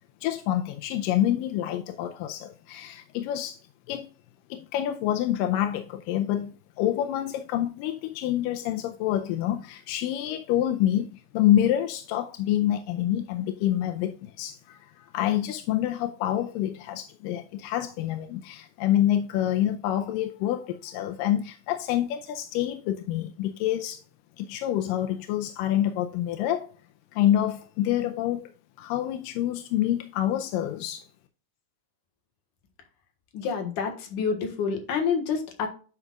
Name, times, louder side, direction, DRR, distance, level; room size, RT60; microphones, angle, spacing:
voice 1, 0.2-3.6 3.9-4.1 4.5-24.0 24.4-26.7 27.1-28.5 28.8-31.1, left 12 dB, 90° left, 2.3 m, -27 dB
voice 2, 33.3-35.7, left 6 dB, 70° left, 2.9 m, -28 dB
9.9 x 5.9 x 2.4 m
omnidirectional pair, 3.8 m